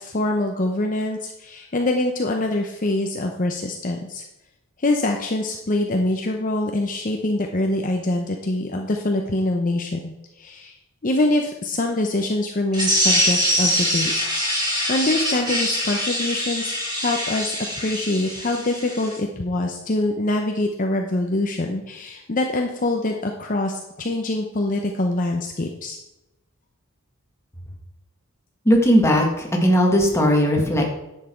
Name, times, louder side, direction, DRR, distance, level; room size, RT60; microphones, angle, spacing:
voice 1, 0.0-4.2 4.8-10.8 11.0-14.1 14.5-26.0, left 2 dB, 35° left, 2 dB, 0.7 m, -24 dB
sound 1, 12.7-19.2, equal, 20° right, 3.4 m, -24 dB
voice 2, 28.6-30.9, equal, 10° left, 0 dB, 1.6 m, -17 dB
10.5 x 7.4 x 4.4 m, 0.93 s
head